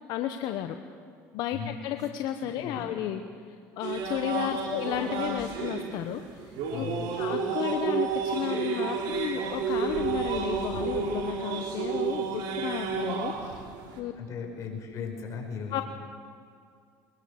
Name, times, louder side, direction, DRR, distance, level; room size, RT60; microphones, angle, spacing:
voice 1, 0.1-0.8 1.3-3.2 3.8-6.9 7.2-13.6 14.0-14.1 15.7-15.8, left 11 dB, 65° left, 7 dB, 1.1 m, -33 dB
voice 2, 2.4-2.9 6.7-7.1 14.1-15.8, left 6 dB, 45° left, 1 dB, 5.2 m, -37 dB
sound 1, 3.8-14.0, right 6 dB, 70° right, 3.7 m, -31 dB
22.0 x 21.0 x 6.6 m, 2.2 s
supercardioid pair, 105°, 7 cm